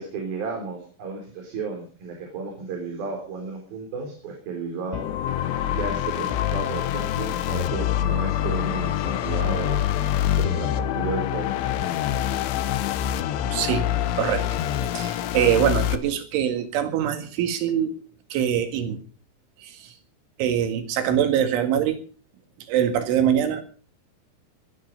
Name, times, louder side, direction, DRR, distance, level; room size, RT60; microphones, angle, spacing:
voice 1, 0.0-5.1 5.7-9.9 10.2-12.2, right 4 dB, 50° right, 1 dB, 5.5 m, -33 dB
sound 1, 4.9-16.0, left 11 dB, 80° left, 3.4 m, -25 dB
voice 2, 13.5-13.8 14.2-14.4 14.9-18.0 18.3-19.0 19.6-19.9 20.4-22.0 22.7-23.6, right 9 dB, 80° right, 6 dB, 4.3 m, -23 dB
21.5 x 10.5 x 5.4 m, 0.42 s
omnidirectional pair, 5.5 m